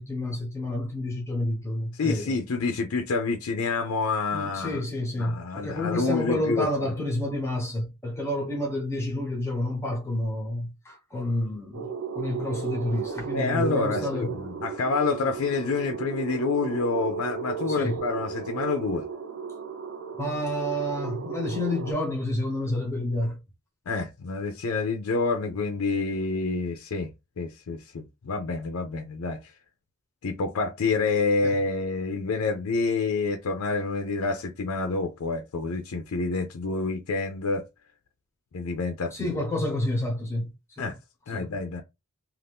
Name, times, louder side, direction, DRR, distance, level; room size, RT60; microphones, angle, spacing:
voice 1, 0.0-2.3 4.3-14.4 17.7-18.0 20.1-23.4 31.4-31.5 39.1-40.5 40.8-40.9 41.3-41.5, left 1 dB, 10° left, 1.0 m, -29 dB
voice 2, 1.9-4.8 5.2-6.9 13.3-19.0 23.9-27.1 27.4-29.5 30.2-37.6 38.5-39.5 40.8-41.0 41.3-41.8, left 4 dB, 75° left, 0.5 m, -28 dB
sound 1, 11.7-21.9, right 6 dB, 65° right, 0.6 m, -34 dB
2.6 x 2.4 x 3.4 m
head